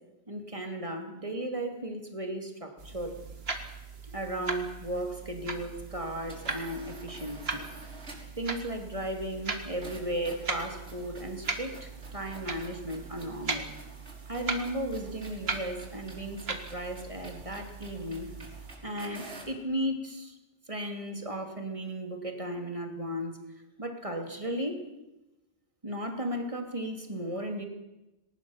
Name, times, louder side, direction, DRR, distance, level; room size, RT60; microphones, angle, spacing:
voice 1, 0.3-3.2 4.1-7.7 8.4-13.7 14.3-18.3 18.8-20.3 20.7-23.4 23.8-24.8 25.8-27.7, right 1 dB, 30° right, 4 dB, 2.8 m, -35 dB
sound 1, 2.8-18.7, right 4 dB, 70° right, 2.2 m, -39 dB
sound 2, 6.2-8.4 9.8-19.6, right 2 dB, 85° right, 5.7 m, -50 dB
19.5 x 19.0 x 7.2 m, 0.98 s
omnidirectional pair, 1.1 m